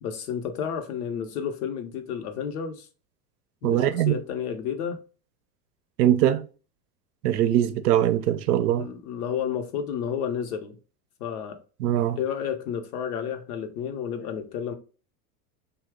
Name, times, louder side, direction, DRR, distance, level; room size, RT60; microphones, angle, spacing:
voice 1, 0.0-2.9 3.6-5.0 8.8-10.7 11.2-11.6 12.2-14.7, left 8 dB, 70° left, 0.8 m, -31 dB
voice 2, 3.6-4.2 6.0-6.4 7.2-8.9 11.8-12.2, right 11 dB, 75° right, 0.6 m, -22 dB
2.7 x 2.3 x 3.4 m
hypercardioid pair, 90°, 48 cm